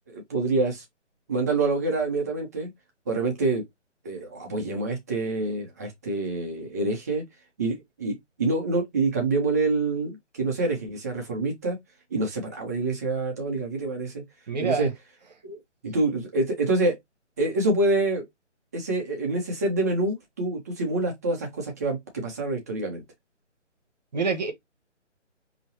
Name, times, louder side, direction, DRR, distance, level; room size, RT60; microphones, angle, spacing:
voice 1, 0.1-0.8 1.3-2.7 3.1-3.6 4.0-7.2 7.6-11.8 12.1-14.2 14.6-14.9 15.4-15.6 15.8-17.0 17.4-18.3 18.7-23.0, right 2 dB, 15° right, 0.7 m, -26 dB
voice 2, 14.5-14.9 24.1-24.5, right 4 dB, 35° right, 1.0 m, -26 dB
5.3 x 2.9 x 2.8 m
figure-of-eight pair, 150°, 37 cm